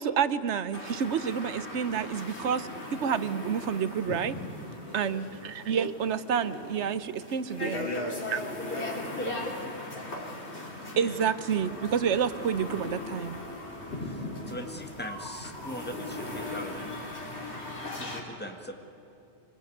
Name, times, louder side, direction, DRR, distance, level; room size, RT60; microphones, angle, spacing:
voice 1, 0.0-4.3 4.9-7.9 8.3-8.4 11.0-13.4, right 7 dB, 90° right, 14 dB, 1.1 m, -29 dB
sound 1, 0.7-18.2, left 2 dB, 75° left, 3.3 m, -39 dB
voice 2, 4.9-5.3 7.6-10.4, left 1 dB, 55° left, 4 dB, 2.5 m, -39 dB
sound 2, 11.5-17.4, equal, 15° right, 8.0 m, -49 dB
voice 3, 14.0-16.9 18.0-18.7, equal, 10° left, 4 dB, 1.7 m, -40 dB
25.0 x 19.5 x 9.3 m, 2.9 s
omnidirectional pair, 1.1 m